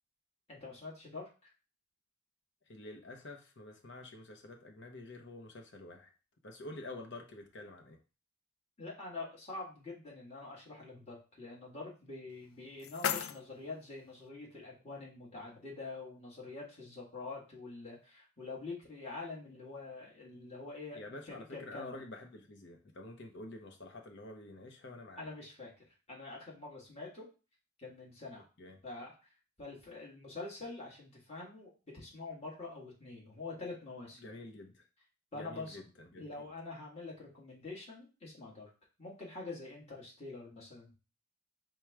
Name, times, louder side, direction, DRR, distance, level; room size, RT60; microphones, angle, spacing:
voice 1, 0.5-1.5 8.8-21.9 25.2-27.3 27.8-28.5 28.8-29.3 29.6-34.3 35.3-35.8 36.2-38.7 39.0-40.9, left 3 dB, 30° left, -4 dB, 1.6 m, -46 dB
voice 2, 2.7-6.1 6.4-8.0 20.9-25.3 28.6-28.8 34.2-34.8 35.3-36.5, left 2 dB, 55° left, 3 dB, 0.8 m, -48 dB
sound 1, 12.3-14.3, left 9 dB, 75° left, 0.3 m, -39 dB
4.5 x 2.2 x 4.6 m, 0.32 s
head